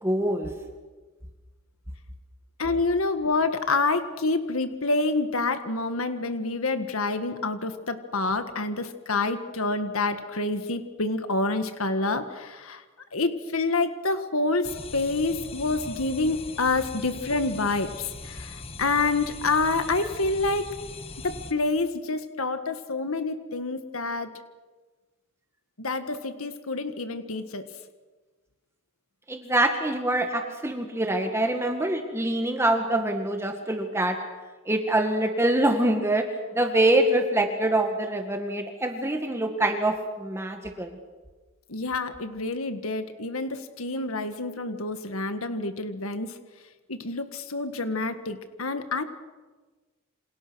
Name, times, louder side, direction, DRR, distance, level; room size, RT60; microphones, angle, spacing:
voice 1, 0.0-0.5 29.3-34.2 34.7-41.0, right 1 dB, 10° right, 4 dB, 1.9 m, -25 dB
voice 2, 2.6-12.8 13.1-20.7 21.2-24.3 25.8-27.7 41.7-46.4 46.9-49.0, left 3 dB, 85° left, 8 dB, 1.8 m, -27 dB
sound 1, 14.6-21.5, left 3 dB, 30° left, 1.6 m, -40 dB
28.5 x 27.0 x 6.3 m, 1.3 s
head